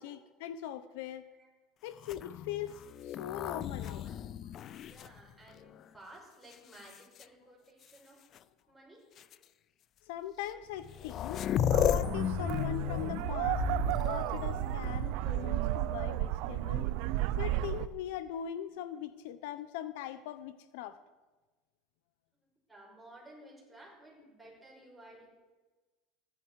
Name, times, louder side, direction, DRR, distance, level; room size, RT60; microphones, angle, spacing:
voice 1, 0.0-1.3 1.8-2.7 3.0-4.0 4.5-4.8 10.1-11.5 11.8-13.6 14.0-16.9 17.4-21.0, left 11 dB, 75° left, 13 dB, 0.7 m, -40 dB
sound 1, 2.0-5.8 6.5-7.2 8.3-8.4 9.2-9.3 10.5-10.6 10.8-15.2 17.2-17.9, left 10 dB, 40° left, 0.4 m, -35 dB
voice 2, 3.6-4.1 4.7-8.2 8.7-9.0 22.7-25.3, right 1 dB, 5° right, -4 dB, 5.6 m, -55 dB
sound 2, 11.7-17.9, right 15 dB, 65° right, 0.6 m, -33 dB
15.0 x 11.5 x 4.7 m, 1.2 s
supercardioid pair, 135°, 0 cm